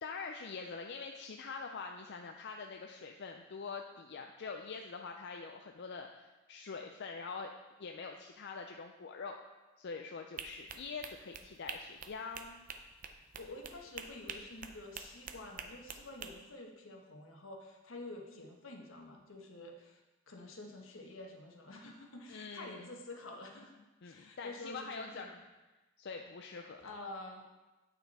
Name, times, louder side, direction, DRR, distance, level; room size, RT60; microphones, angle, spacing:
voice 1, 0.0-7.5 7.8-9.4 9.8-12.7 22.3-22.9 24.0-25.3 26.0-26.9, left 4 dB, 60° left, 3 dB, 0.5 m, -44 dB
sound 1, 10.4-16.3, right 6 dB, 40° right, 0.6 m, -46 dB
voice 2, 13.4-20.0 20.3-25.4 26.5-27.4, left 2 dB, 80° left, 2 dB, 1.2 m, -49 dB
8.9 x 5.8 x 4.2 m, 1.1 s
head